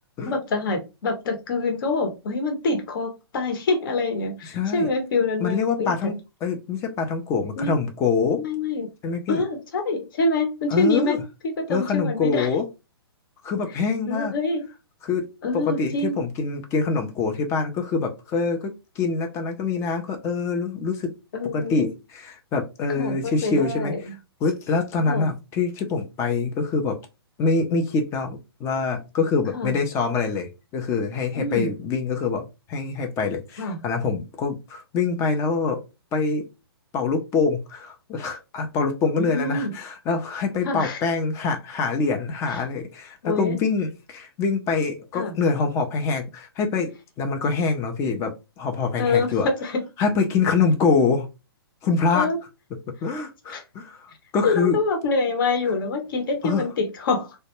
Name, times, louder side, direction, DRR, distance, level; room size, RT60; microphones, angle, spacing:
voice 1, 0.2-5.9 7.6-7.7 8.4-8.9 9.3-11.2 11.4-12.5 14.1-14.6 15.4-16.2 21.3-21.9 23.0-24.1 25.1-25.3 29.5-29.7 31.3-31.7 33.6-33.8 39.2-39.7 40.6-41.0 43.2-43.6 45.1-45.3 49.0-49.3 49.6-49.8 52.1-52.4 53.5-53.6 54.4-57.4, left 3 dB, 55° left, 4 dB, 0.9 m, -26 dB
voice 2, 4.5-4.9 5.4-6.1 6.4-8.4 9.0-9.4 10.7-11.2 11.7-12.6 13.4-14.3 15.0-21.1 21.5-23.9 24.4-27.0 27.4-35.8 36.1-36.5 36.9-49.5 50.0-51.3 51.8-52.3 53.0-54.1 54.3-54.8 56.4-56.6, left 4 dB, 20° left, 5 dB, 0.5 m, -25 dB
2.1 x 2.1 x 2.9 m, 0.26 s
hypercardioid pair, 130°, 13 cm